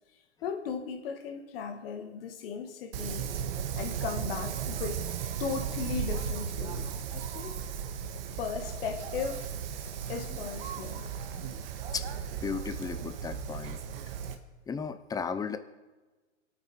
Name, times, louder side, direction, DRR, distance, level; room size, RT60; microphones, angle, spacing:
voice 1, 0.4-3.3 3.8-5.1 5.4-7.6 8.4-9.5 10.1-11.1, left 6 dB, 55° left, 5 dB, 2.3 m, -37 dB
Wind, 2.9-14.3, right 7 dB, 55° right, 1.7 m, -36 dB
voice 2, 12.4-13.8 14.7-15.6, left 6 dB, 10° left, 11 dB, 0.8 m, -35 dB
27.5 x 9.2 x 4.6 m, 1.2 s
hypercardioid pair, 125°, 34 cm